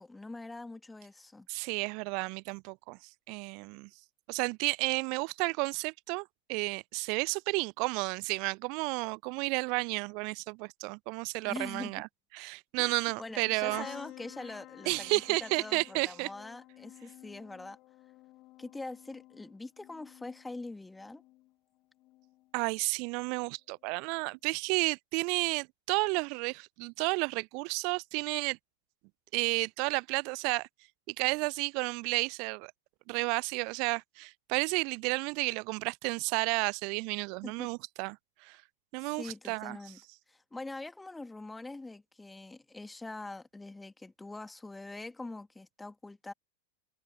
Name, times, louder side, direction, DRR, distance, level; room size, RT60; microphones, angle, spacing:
voice 1, 0.0-1.5 11.4-11.9 12.8-17.8 18.6-21.2 37.4-37.7 39.0-40.0 40.3-46.3, left 2 dB, 10° left, 2.1 m, -44 dB
voice 2, 1.5-3.0 3.3-3.9 4.3-12.1 12.3-13.9 14.9-16.3 22.5-28.6 29.3-30.7 31.1-32.7 33.1-38.6 38.9-39.8, right 33 dB, 45° right, 0.3 m, -32 dB
sound 1, 13.7-21.5 22.0-22.5 23.8-24.0 24.2-24.3, left 18 dB, 40° left, 1.6 m, -52 dB
figure-of-eight pair, 90°, 0 cm